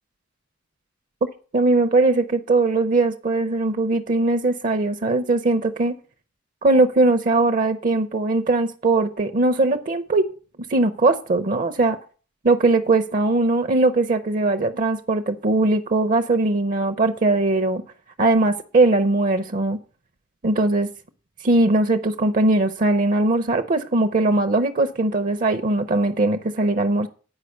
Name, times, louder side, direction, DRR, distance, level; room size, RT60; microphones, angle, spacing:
voice 1, 1.5-5.9 6.6-10.3 10.7-12.0 12.4-17.8 18.2-19.8 20.4-20.9 21.4-27.1, right 2 dB, 40° right, 0.6 m, -20 dB
9.7 x 4.9 x 6.4 m
head